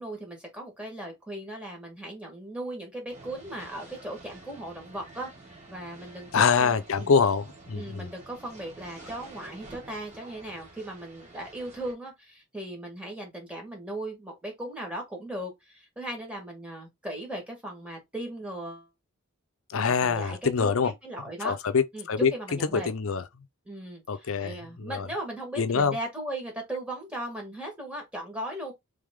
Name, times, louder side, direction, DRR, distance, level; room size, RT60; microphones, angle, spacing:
voice 1, 0.0-5.3 5.7-7.1 7.7-18.9 20.0-20.8 21.0-21.6 21.9-22.9 23.7-28.7, right 1 dB, 5° right, 1.5 m, -38 dB
sound 1, 3.1-11.9, right 2 dB, 30° right, 1.7 m, -49 dB
voice 2, 6.3-8.1 19.7-20.9 21.4-23.2 24.1-25.1 25.6-26.0, left 5 dB, 65° left, 0.6 m, -25 dB
3.5 x 3.4 x 3.6 m
head